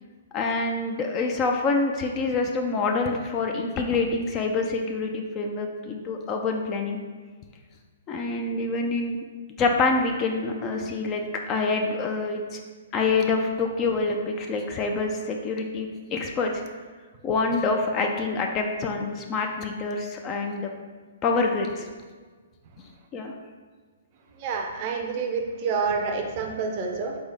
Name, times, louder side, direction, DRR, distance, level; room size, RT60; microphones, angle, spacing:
voice 1, 0.3-7.0 8.1-9.2 9.6-12.6 12.9-16.5 17.2-20.7 21.2-21.9 23.1-23.3, left 3 dB, 30° left, 2 dB, 0.4 m, -26 dB
voice 2, 24.4-27.2, right 5 dB, 40° right, 2 dB, 0.6 m, -28 dB
3.9 x 3.5 x 3.5 m, 1.4 s
hypercardioid pair, 125°, 0 cm